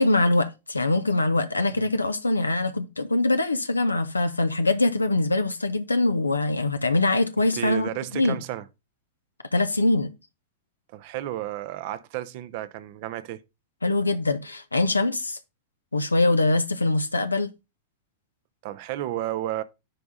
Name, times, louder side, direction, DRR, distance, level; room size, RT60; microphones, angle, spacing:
voice 1, 0.0-8.4 9.5-10.1 13.8-15.4 15.9-17.5, left 2 dB, 80° left, 0.6 m, -23 dB
voice 2, 7.5-8.6 10.9-13.4 18.6-19.6, right 13 dB, 50° right, 0.7 m, -32 dB
10.0 x 3.5 x 3.9 m
figure-of-eight pair, 90°, 0 cm